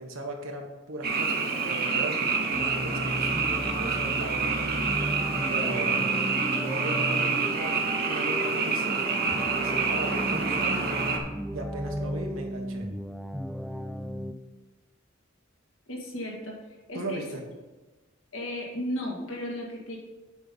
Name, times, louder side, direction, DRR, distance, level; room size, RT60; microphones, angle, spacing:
voice 1, 0.0-3.4 3.8-5.0 5.5-6.2 6.6-9.1 9.6-10.9 11.5-12.9 16.9-17.4, right 1 dB, 85° right, 2 dB, 1.5 m, -37 dB
Frog, 1.0-11.2, right 4 dB, 50° right, 1.2 m, -27 dB
sound 1, 2.5-14.3, equal, ahead, 0.3 m, -35 dB
voice 2, 15.9-16.6 16.9-17.2 18.3-20.0, left 1 dB, 80° left, -2 dB, 2.2 m, -34 dB
8.8 x 5.5 x 5.2 m, 1.2 s
head